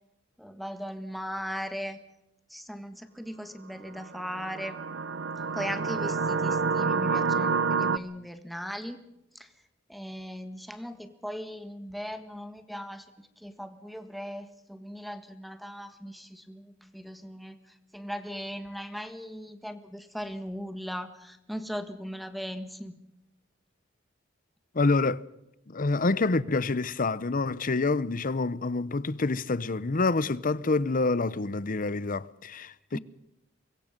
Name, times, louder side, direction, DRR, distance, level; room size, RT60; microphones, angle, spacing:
voice 1, 0.4-2.0 2.5-4.8 5.5-9.0 9.3-9.5 9.9-13.1 13.4-17.6 17.9-23.0 32.9-33.0, equal, ahead, 1.6 m, -38 dB
sound 1, 4.0-8.0, right 5 dB, 70° right, 0.9 m, -28 dB
voice 2, 24.7-25.2 25.7-33.0, left 3 dB, 45° left, 0.8 m, -27 dB
25.0 x 22.0 x 5.3 m
head